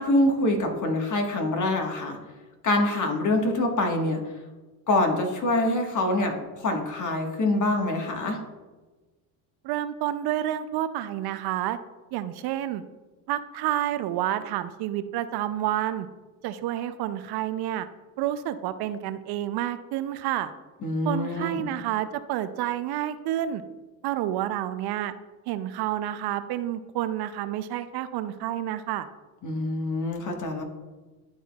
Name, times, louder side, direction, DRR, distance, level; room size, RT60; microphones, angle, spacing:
voice 1, 0.0-2.2 2.6-4.2 4.9-8.4 20.8-21.7 29.4-30.6, left 2 dB, 40° left, 3 dB, 1.5 m, -25 dB
voice 2, 9.6-11.8 12.1-12.8 13.3-16.1 16.4-17.9 18.2-20.5 21.0-23.6 24.0-25.1 25.5-29.1, right 12 dB, 55° right, 12 dB, 0.5 m, -29 dB
11.0 x 4.3 x 2.3 m, 1.2 s
hypercardioid pair, 70°, 48 cm